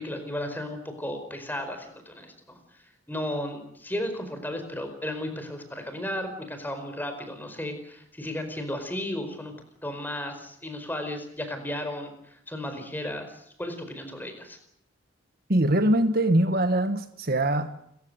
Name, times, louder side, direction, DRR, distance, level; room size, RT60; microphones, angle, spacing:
voice 1, 0.0-9.5 9.8-14.6, left 1 dB, 10° left, 7 dB, 4.7 m, -34 dB
voice 2, 15.5-17.8, right 1 dB, 45° right, 10 dB, 1.4 m, -23 dB
30.0 x 15.5 x 8.0 m, 0.72 s
head